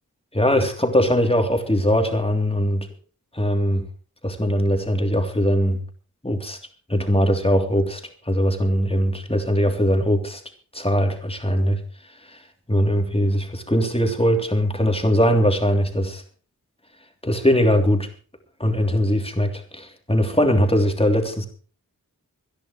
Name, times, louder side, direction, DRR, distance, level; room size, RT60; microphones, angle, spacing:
voice 1, 0.3-2.9 3.3-3.9 4.2-5.8 6.2-6.6 6.9-10.4 10.7-11.8 12.3-12.4 12.7-16.2 17.2-18.1 18.6-21.5, equal, 15° left, 4 dB, 3.2 m, -21 dB
26.5 x 10.5 x 3.2 m, 0.41 s
wide cardioid pair, 60°, 34 cm